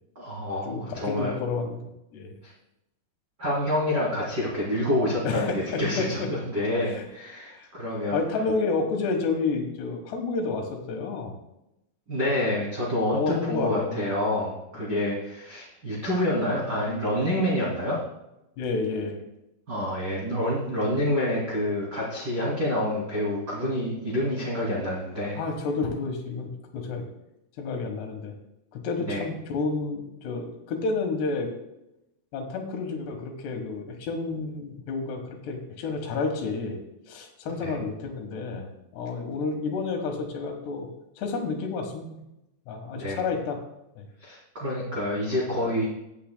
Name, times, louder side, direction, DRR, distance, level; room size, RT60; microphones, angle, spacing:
voice 1, 0.1-1.4 2.4-2.5 3.4-8.2 12.1-18.0 19.7-25.4 29.0-29.2 37.5-37.7 42.9-43.2 44.2-45.9, left 1 dB, 30° right, -7 dB, 2.2 m, -27 dB
voice 2, 0.7-1.8 2.1-2.4 5.2-6.3 7.0-7.1 7.5-7.7 8.1-11.3 13.1-14.1 14.8-15.0 18.6-19.2 25.4-27.0 27.6-28.3 28.7-31.5 32.3-36.8 37.1-40.9 41.2-42.2 42.7-43.6 44.0-44.1, left 4 dB, 65° left, 4 dB, 3.2 m, -30 dB
17.0 x 9.2 x 2.2 m, 0.88 s
omnidirectional pair, 5.6 m